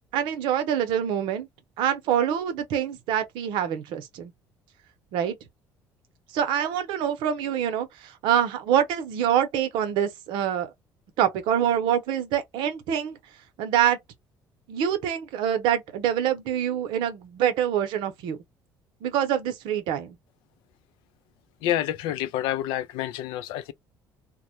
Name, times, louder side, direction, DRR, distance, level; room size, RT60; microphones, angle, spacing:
voice 1, 0.1-1.5 1.8-4.3 5.1-5.4 6.3-10.7 11.2-13.2 13.6-14.0 14.7-18.4 19.0-20.2, right 9 dB, 80° right, 0.7 m, -25 dB
voice 2, 21.6-23.7, left 12 dB, 85° left, 0.4 m, -28 dB
2.2 x 2.0 x 2.8 m
supercardioid pair, 85°, 8 cm